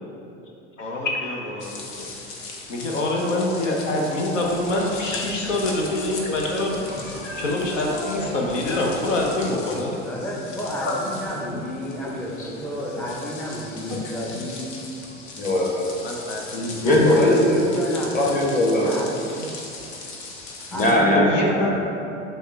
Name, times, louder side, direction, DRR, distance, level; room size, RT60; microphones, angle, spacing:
voice 1, 0.8-1.7 2.0-2.1 2.7-6.8 7.4-9.9 10.8-10.9 11.5-11.6 12.1-12.2 13.9-14.0 14.3-14.4 16.0-17.3 21.1-21.7, left 2 dB, 90° left, -1 dB, 0.7 m, -25 dB
sound 1, 1.6-20.9, left 3 dB, 60° left, 0.9 m, -39 dB
sound 2, 4.4-9.5, left 1 dB, 45° left, 1.4 m, -37 dB
voice 2, 10.0-14.7 16.8-18.4 18.8-19.4 20.7-21.8, equal, 5° left, -3 dB, 0.4 m, -31 dB
voice 3, 15.4-15.8 16.8-17.7 18.1-18.9 20.7-21.8, left 1 dB, 20° left, -3 dB, 1.0 m, -19 dB
6.1 x 2.2 x 3.4 m, 2.7 s
hypercardioid pair, 80°, 36 cm